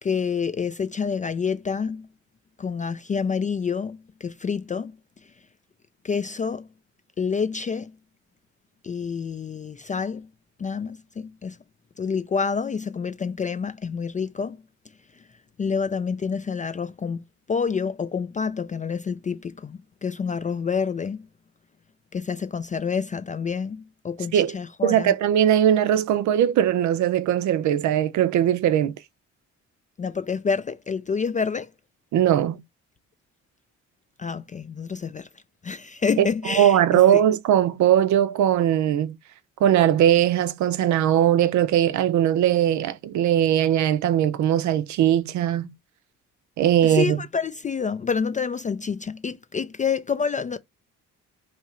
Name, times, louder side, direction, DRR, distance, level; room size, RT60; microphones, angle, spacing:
voice 1, 0.0-2.1 2.6-4.9 6.0-6.7 7.2-7.9 8.8-10.3 10.6-11.6 12.0-14.6 15.6-17.2 17.5-21.2 22.1-25.1 30.0-31.7 34.2-35.3 35.6-36.8 37.1-37.2 46.8-50.6, left 6 dB, 25° left, 0.3 m, -28 dB
voice 2, 24.8-29.0 32.1-32.6 36.2-39.1 39.6-45.7 46.6-47.2, right 10 dB, 70° right, 0.5 m, -20 dB
2.9 x 2.4 x 4.2 m
cardioid pair, 90°, 30 cm